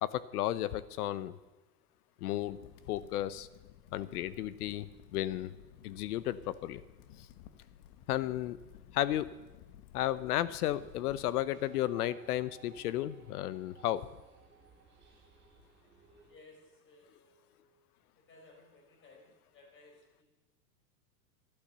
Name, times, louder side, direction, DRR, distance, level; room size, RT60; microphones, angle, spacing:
voice 1, 0.0-1.4 2.2-2.6 2.9-3.5 3.9-5.5 5.8-6.8 7.2-7.3 8.1-8.6 8.9-9.3 9.9-14.1, left 13 dB, 65° left, 17 dB, 0.9 m, -33 dB
Crackle, 2.4-11.4, left 10 dB, 50° left, 1.1 m, -55 dB
sound 1, 10.8-16.4, right 5 dB, 25° right, 3.3 m, -60 dB
voice 2, 16.3-17.8 18.1-20.2, left 2 dB, 25° left, 1 dB, 4.6 m, -59 dB
12.5 x 11.5 x 6.8 m, 1.1 s
hypercardioid pair, 135°, 49 cm